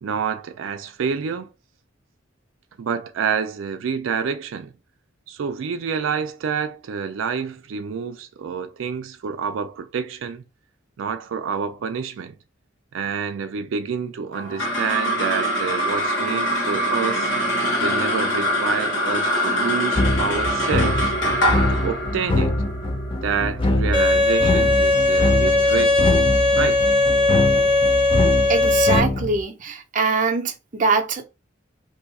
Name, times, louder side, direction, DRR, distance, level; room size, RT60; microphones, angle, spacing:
voice 1, 0.0-1.5 2.8-4.7 5.3-10.4 11.0-12.3 12.9-17.3 17.8-21.1 21.7-22.6 23.2-26.1 26.6-26.9, right 6 dB, 90° right, 0.4 m, -28 dB
sound 1, 14.3-24.9, equal, 75° left, 1.1 m, -24 dB
sound 2, 20.0-29.4, left 2 dB, 25° left, 0.4 m, -24 dB
Bowed string instrument, 23.9-29.0, left 2 dB, 45° left, 1.3 m, -18 dB
voice 2, 28.5-31.2, right 4 dB, 40° right, 0.6 m, -23 dB
2.6 x 2.4 x 4.0 m
head